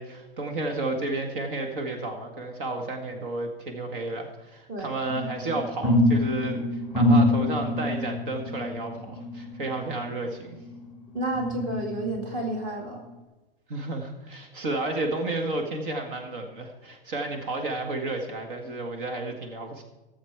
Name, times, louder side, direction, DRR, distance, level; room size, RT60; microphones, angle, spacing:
voice 1, 0.0-10.6 13.7-19.8, right 2 dB, 60° right, 4 dB, 1.7 m, -32 dB
sound 1, 5.1-10.9 11.3-12.5 12.9-13.1, left 1 dB, 5° right, 1.0 m, -26 dB
voice 2, 11.1-13.0, right 1 dB, 25° right, 1 dB, 2.0 m, -31 dB
17.5 x 7.3 x 4.6 m, 1.1 s
supercardioid pair, 170°, 30 cm